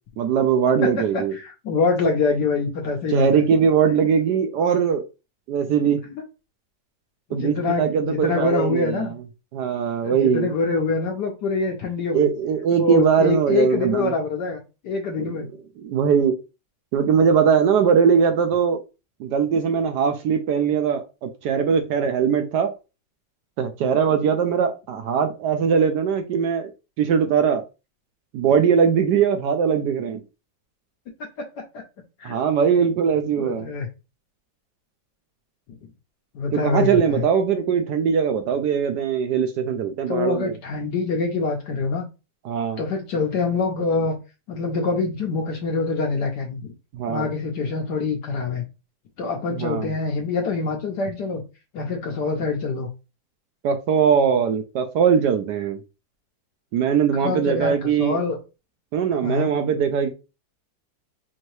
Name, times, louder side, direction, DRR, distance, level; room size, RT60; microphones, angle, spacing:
voice 1, 0.2-1.3 3.1-5.0 5.5-6.0 7.3-9.0 9.5-10.5 12.1-14.1 15.2-15.5 15.8-16.3 16.9-18.8 19.2-22.7 23.6-26.7 27.0-27.6 28.3-30.2 32.2-33.7 36.5-40.5 42.4-42.8 46.9-47.3 49.6-49.9 53.6-55.8 56.7-58.2 58.9-60.1, right 7 dB, 70° right, 7 dB, 1.0 m, -21 dB
voice 2, 1.1-3.5 7.3-9.1 10.0-12.3 12.7-14.6 14.8-15.5 31.7-31.8 32.2-32.4 33.4-33.9 36.3-37.3 40.1-42.1 42.8-44.2 44.5-46.7 47.1-48.7 49.2-51.4 51.7-52.9 57.1-58.4 59.2-59.5, left 4 dB, 70° left, 1 dB, 1.2 m, -25 dB
4.4 x 2.8 x 3.1 m, 0.29 s
omnidirectional pair, 2.1 m